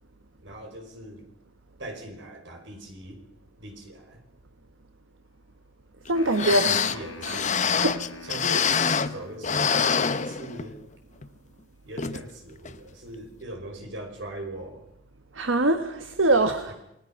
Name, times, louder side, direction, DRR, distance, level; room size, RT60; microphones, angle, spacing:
voice 1, 0.4-1.3 1.8-3.2 3.6-4.2 6.4-7.5 8.2-10.8 11.9-14.9 16.7-16.8, right 1 dB, 65° right, 3 dB, 5.4 m, -40 dB
sound 1, 6.1-9.5, left 3 dB, 80° left, 5.1 m, -44 dB
sound 2, 6.1-6.2 6.3-9.2 9.4-10.8 11.2-11.3 12.0-12.2 12.7-12.8, left 6 dB, 40° left, 0.9 m, -25 dB
voice 2, 6.1-6.7 7.3-7.4 7.8-7.9 15.3-16.7, right 2 dB, 85° right, 8 dB, 1.4 m, -23 dB
28.5 x 20.0 x 5.8 m, 0.82 s
head